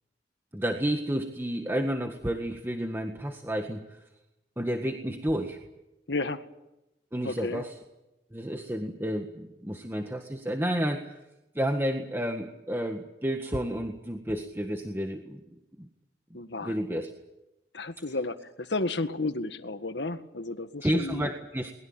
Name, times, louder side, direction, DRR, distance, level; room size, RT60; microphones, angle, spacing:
voice 1, 0.5-4.0 4.6-5.6 7.1-7.7 8.3-11.2 11.6-15.4 15.8-15.9 16.6-17.1 20.8-21.7, equal, 15° right, 4 dB, 1.7 m, -31 dB
voice 2, 6.1-6.5 7.2-7.6 16.3-17.0 17.7-21.3, left 2 dB, 85° left, 9 dB, 1.8 m, -32 dB
23.0 x 21.0 x 8.9 m, 0.92 s
head